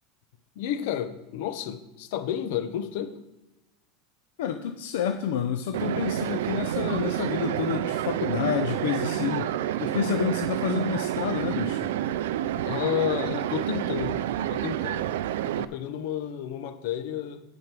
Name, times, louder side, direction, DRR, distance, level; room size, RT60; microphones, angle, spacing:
voice 1, 0.5-3.2 12.6-15.1 15.4-17.4, left 10 dB, 65° left, 9 dB, 1.0 m, -31 dB
voice 2, 4.4-11.9, left 8 dB, 85° left, 7 dB, 0.6 m, -29 dB
sound 1, 5.7-15.6, right 12 dB, 90° right, 0.4 m, -29 dB
11.0 x 5.2 x 6.1 m, 0.96 s
supercardioid pair, 150°, 0 cm